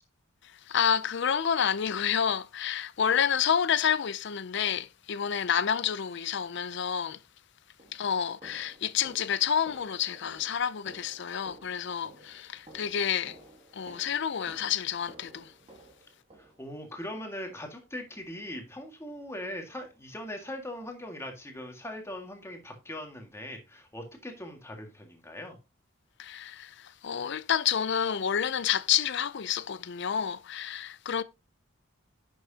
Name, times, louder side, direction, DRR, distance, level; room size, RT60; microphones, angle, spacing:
voice 1, 0.4-7.2 7.9-13.4 13.7-15.5 26.2-31.2, left 8 dB, 60° left, 0.5 m, -29 dB
sound 1, 7.1-7.2 7.8-17.0 17.5-17.8 18.1-18.3 18.7-18.9 19.3-19.4 19.9-20.0, right 1 dB, 30° right, 2.4 m, -54 dB
voice 2, 16.4-25.6, left 1 dB, 15° left, 1.9 m, -40 dB
10.5 x 6.2 x 2.8 m
head